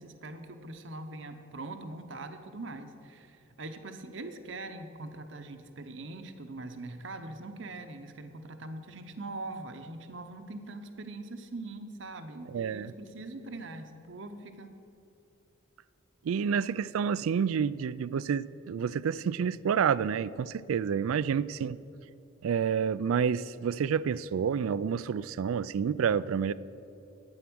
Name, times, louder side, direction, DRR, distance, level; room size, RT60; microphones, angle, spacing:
voice 1, 0.0-14.7, right 2 dB, 60° right, 8 dB, 0.8 m, -42 dB
voice 2, 12.5-12.9 16.2-21.8 22.4-26.5, right 7 dB, 85° right, 18 dB, 0.3 m, -29 dB
11.5 x 8.9 x 6.1 m, 2.8 s
head